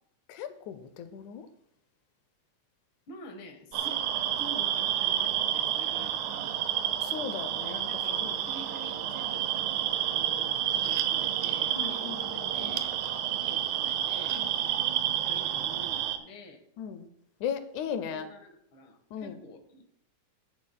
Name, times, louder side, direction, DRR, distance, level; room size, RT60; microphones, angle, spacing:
voice 1, 0.3-1.5 7.0-8.4 11.8-12.8 14.4-14.5 16.8-17.1 17.4-18.3 19.1-19.4, left 8 dB, 85° left, 10 dB, 2.2 m, -37 dB
voice 2, 3.1-4.0 4.4-6.6 7.5-9.5 10.0-12.9 13.3-14.4 15.2-16.6 18.1-19.8, left 1 dB, 50° left, 4 dB, 2.1 m, -48 dB
sound 1, 3.7-16.2, right 11 dB, 80° right, 2.1 m, -30 dB
14.5 x 9.9 x 2.3 m, 0.74 s
omnidirectional pair, 3.3 m